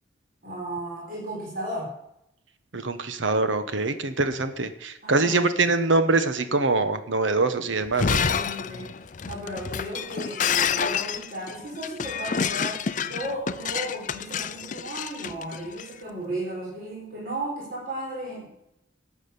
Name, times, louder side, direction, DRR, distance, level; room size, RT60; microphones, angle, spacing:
voice 1, 0.4-1.9 5.0-5.4 8.2-18.5, right 1 dB, 50° right, -5 dB, 4.0 m, -35 dB
voice 2, 2.7-8.2, right 3 dB, 75° right, 10 dB, 1.1 m, -24 dB
Shatter, 7.8-15.9, left 7 dB, 40° left, 0.5 m, -28 dB
12.5 x 7.4 x 6.8 m, 0.80 s
head